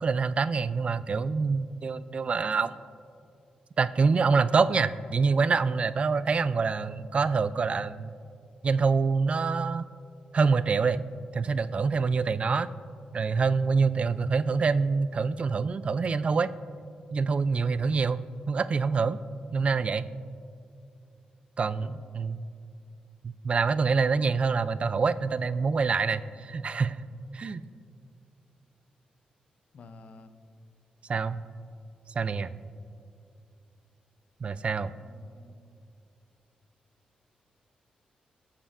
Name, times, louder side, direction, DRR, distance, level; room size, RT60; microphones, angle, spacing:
voice 1, 0.0-2.8 3.8-8.1 8.6-9.9 10.3-11.0 11.3-12.7 13.1-16.5 17.1-19.2 19.5-20.1 21.6-22.4 23.2-27.0 27.3-27.6 31.1-31.4 32.2-32.5 34.4-34.9, right 4 dB, 45° right, 15 dB, 0.3 m, -26 dB
voice 2, 29.7-30.4 35.0-35.6, left 3 dB, 60° left, 9 dB, 0.6 m, -50 dB
14.0 x 7.3 x 2.5 m, 2.4 s
cardioid pair, 70°, 3 cm